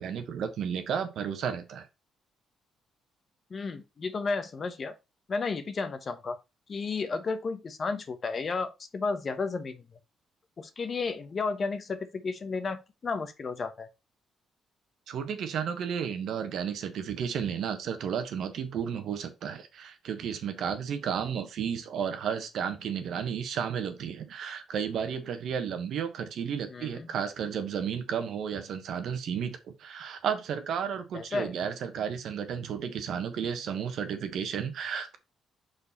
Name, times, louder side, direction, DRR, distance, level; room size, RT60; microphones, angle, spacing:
voice 1, 0.0-1.9 15.1-35.2, right 7 dB, 70° right, 1.1 m, -33 dB
voice 2, 3.5-4.9 5.3-6.4 6.7-9.8 10.6-13.9 26.7-27.1 31.1-31.5, left 4 dB, 40° left, 0.9 m, -33 dB
5.1 x 4.6 x 4.1 m
cardioid pair, 90°, 0 cm